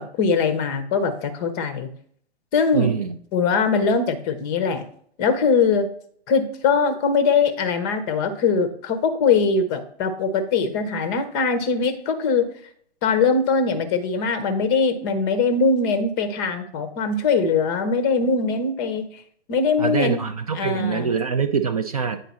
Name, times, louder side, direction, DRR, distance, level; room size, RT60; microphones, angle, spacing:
voice 1, 0.0-1.9 2.5-2.9 3.3-4.8 5.2-5.9 6.3-12.5 13.0-19.2 19.5-20.2 20.5-21.1, left 5 dB, 20° left, 9 dB, 0.6 m, -21 dB
voice 2, 2.7-3.1 19.8-22.2, right 6 dB, 35° right, 7 dB, 0.4 m, -24 dB
9.1 x 3.8 x 4.1 m, 0.63 s
figure-of-eight pair, 120°, 34 cm